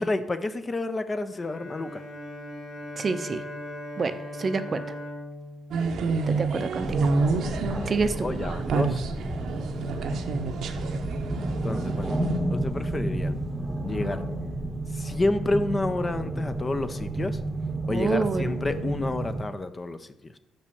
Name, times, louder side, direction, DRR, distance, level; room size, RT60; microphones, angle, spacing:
voice 1, 0.0-2.0 8.2-9.0 11.6-12.2 12.5-13.3 13.8-14.2 14.9-17.4 17.9-20.3, left 2 dB, 25° left, 11 dB, 0.5 m, -29 dB
Bowed string instrument, 1.3-6.8, left 1 dB, 75° left, 3.0 m, -39 dB
voice 2, 3.0-3.4 4.0-4.8 6.3-6.9 7.8-8.3 17.9-18.6, right 4 dB, 40° right, 11 dB, 0.6 m, -27 dB
sound 1, 5.7-12.4, right 4 dB, 70° right, 0.8 m, -29 dB
sound 2, 6.8-19.4, right 1 dB, 10° right, 0.9 m, -31 dB
5.8 x 5.4 x 6.9 m, 0.86 s
cardioid pair, 90°, 0 cm